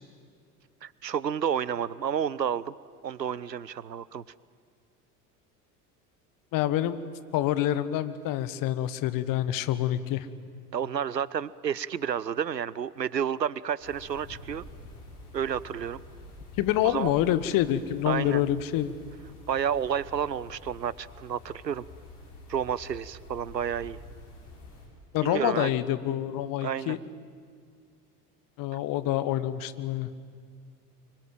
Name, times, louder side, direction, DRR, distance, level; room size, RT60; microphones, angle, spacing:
voice 1, 0.8-2.7 3.0-4.2 10.7-14.6 15.3-16.0 16.8-17.1 18.1-18.4 19.5-21.8 22.5-24.0 25.2-25.7 26.6-27.0, right 8 dB, 85° right, 21 dB, 0.6 m, -30 dB
voice 2, 6.5-7.0 7.3-10.3 16.6-18.9 25.1-27.0 28.6-30.1, left 12 dB, 45° left, 14 dB, 1.3 m, -27 dB
sound 1, 13.8-24.9, left 1 dB, 65° left, 5.7 m, -48 dB
25.0 x 23.5 x 9.2 m, 2.1 s
figure-of-eight pair, 65°, 48 cm